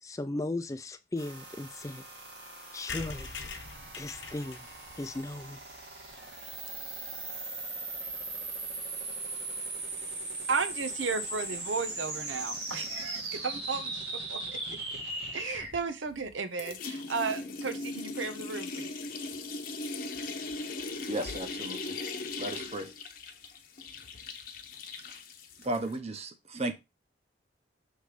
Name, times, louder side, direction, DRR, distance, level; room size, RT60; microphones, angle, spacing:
voice 1, 0.0-2.0 2.7-3.4 4.0-4.7 5.0-5.6, left 2 dB, 15° left, 0.3 m, -36 dB
sound 1, 1.2-15.7, right 2 dB, 70° right, 2.5 m, -39 dB
sound 2, 2.9-6.6 7.0-7.1 7.3-7.4 7.6-7.7 7.9-8.2, left 4 dB, 75° left, 1.0 m, -44 dB
voice 2, 10.5-15.0 15.3-18.9, right 4 dB, 90° right, 0.8 m, -34 dB
sound 3, 15.7-16.3 16.6-26.0, left 3 dB, 50° left, 0.8 m, -39 dB
voice 3, 21.1-22.0 22.4-22.9 25.6-26.7, right 1 dB, 35° right, 0.8 m, -34 dB
6.4 x 3.1 x 4.9 m
head